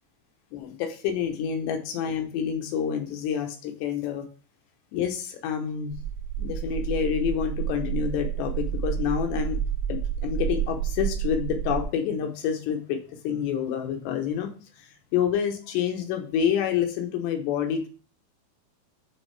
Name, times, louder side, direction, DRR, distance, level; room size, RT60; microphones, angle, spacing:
voice 1, 0.5-4.3 4.9-5.9 6.4-9.6 9.9-14.5 14.8-17.9, left 8 dB, 75° left, 5 dB, 2.8 m, -28 dB
sound 1, 5.9-11.8, right 9 dB, 85° right, 1.8 m, -30 dB
9.1 x 4.1 x 3.2 m, 0.37 s
omnidirectional pair, 5.5 m